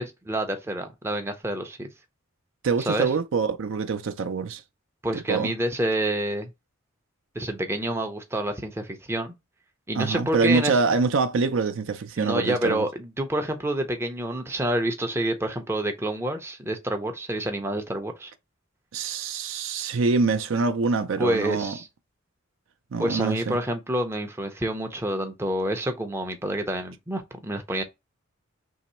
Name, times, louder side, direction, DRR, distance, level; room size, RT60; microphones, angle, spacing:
voice 1, 0.0-1.9 2.8-3.1 5.0-6.5 7.4-9.3 9.9-10.8 12.2-18.3 21.2-21.9 23.0-27.8, right 1 dB, 10° right, 0.5 m, -28 dB
voice 2, 2.6-4.6 5.1-5.5 9.9-12.8 18.9-21.8 22.9-23.6, right 4 dB, 65° right, 0.5 m, -25 dB
3.0 x 2.7 x 4.2 m
head